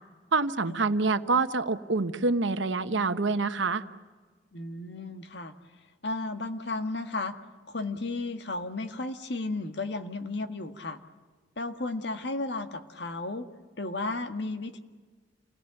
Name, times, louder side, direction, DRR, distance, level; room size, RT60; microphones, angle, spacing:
voice 1, 0.3-3.8, right 3 dB, 85° right, 11 dB, 1.1 m, -26 dB
voice 2, 4.5-5.5 6.0-7.4 7.7-11.0 11.6-13.5 13.8-14.8, left 2 dB, 65° left, 7 dB, 1.7 m, -34 dB
28.5 x 18.0 x 9.0 m, 1.4 s
head